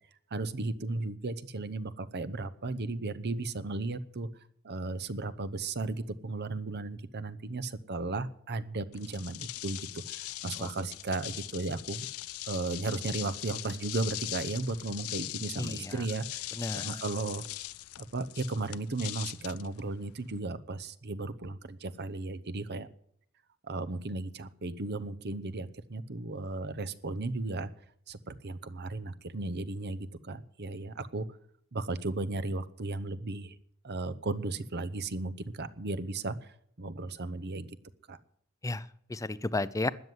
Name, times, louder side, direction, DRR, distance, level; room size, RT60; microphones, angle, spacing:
voice 1, 0.3-4.3 4.6-12.1 12.5-16.4 16.7-17.4 18.0-22.9 23.7-27.7 28.1-31.3 31.7-33.6 33.8-36.4 36.8-37.7 38.1-38.2, right 3 dB, 50° right, 15 dB, 0.9 m, -35 dB
sound 1, 8.9-20.4, left 16 dB, 85° left, 0.5 m, -41 dB
voice 2, 15.6-16.0 16.6-17.0 38.6-39.9, left 2 dB, 15° left, 17 dB, 0.5 m, -33 dB
13.0 x 9.4 x 8.0 m, 0.68 s
head